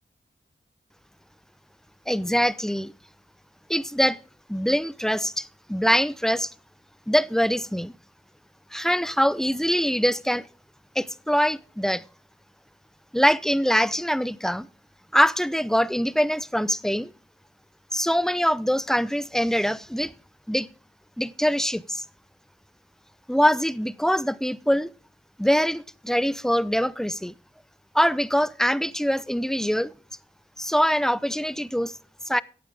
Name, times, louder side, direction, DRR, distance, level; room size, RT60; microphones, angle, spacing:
voice 1, 2.1-2.9 3.7-4.2 4.5-6.5 7.1-7.9 8.7-10.5 11.0-12.0 13.1-14.7 15.1-17.1 17.9-20.1 20.5-20.7 21.2-22.0 23.3-24.9 25.4-27.3 27.9-29.9 30.6-31.9 32.3-32.4, equal, ahead, 0.4 m, -23 dB
11.5 x 8.6 x 4.8 m
cardioid pair, 40°, 21 cm